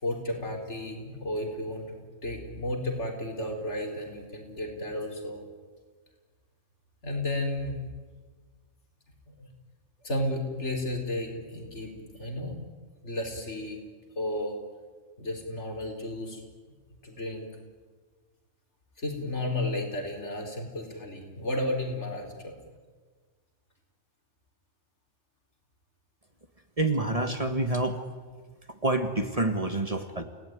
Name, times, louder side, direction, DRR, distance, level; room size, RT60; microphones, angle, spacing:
voice 1, 0.0-5.4 7.0-7.8 9.3-9.5 10.0-12.6 13.0-13.8 14.2-14.6 15.2-16.4 17.0-17.5 19.0-22.5, left 1 dB, 60° left, 2 dB, 4.7 m, -33 dB
voice 2, 26.8-28.0 28.7-30.2, right 2 dB, 30° right, 6 dB, 1.7 m, -27 dB
29.0 x 18.0 x 9.5 m, 1.5 s
omnidirectional pair, 1.3 m